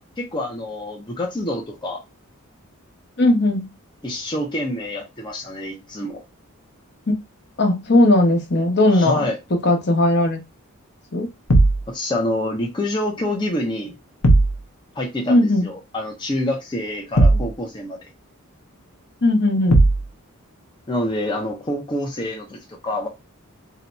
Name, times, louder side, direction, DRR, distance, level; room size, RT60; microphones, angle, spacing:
voice 1, 0.0-2.0 4.0-6.2 8.9-9.4 11.9-13.9 15.0-18.0 20.9-23.1, left 1 dB, 20° left, 0.6 m, -27 dB
voice 2, 3.2-3.7 7.1-7.2 7.6-9.2 9.5-10.4 11.1-11.3 15.3-15.7 19.2-19.8, left 1 dB, 50° left, 0.9 m, -17 dB
sound 1, 11.5-11.9 14.2-14.6 17.2-17.5 19.7-20.1, right 2 dB, 85° left, 0.8 m, -15 dB
2.8 x 2.2 x 4.0 m
head